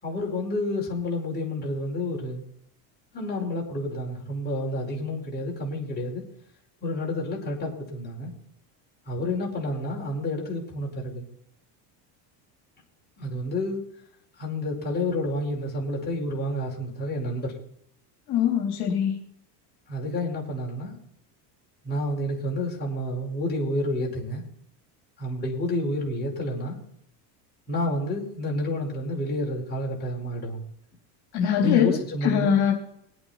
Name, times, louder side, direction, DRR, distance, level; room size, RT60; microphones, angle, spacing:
voice 1, 0.0-2.4 3.1-6.2 6.8-8.3 9.1-11.2 13.2-13.8 14.4-17.5 19.9-20.9 21.8-24.4 25.2-26.8 27.7-30.6 31.6-32.5, left 1 dB, 20° left, -3 dB, 4.9 m, -29 dB
voice 2, 18.3-19.1 31.3-32.7, left 8 dB, 50° left, -1 dB, 3.4 m, -23 dB
22.0 x 8.7 x 4.3 m, 0.71 s
supercardioid pair, 125°, 48 cm